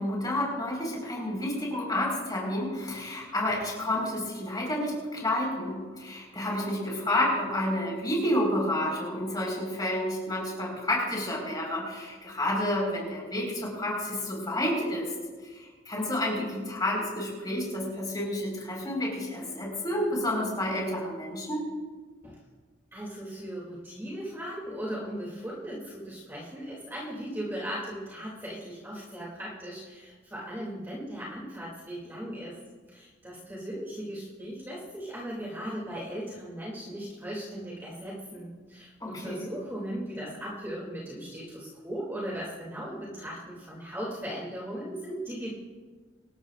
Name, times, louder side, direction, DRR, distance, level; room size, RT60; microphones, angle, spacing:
voice 1, 0.0-15.1 15.8-21.6 39.0-39.4, left 1 dB, 20° left, -2 dB, 4.6 m, -30 dB
voice 2, 22.9-32.6 32.9-45.5, equal, 10° right, -5 dB, 2.6 m, -38 dB
25.0 x 13.0 x 2.5 m, 1.4 s
head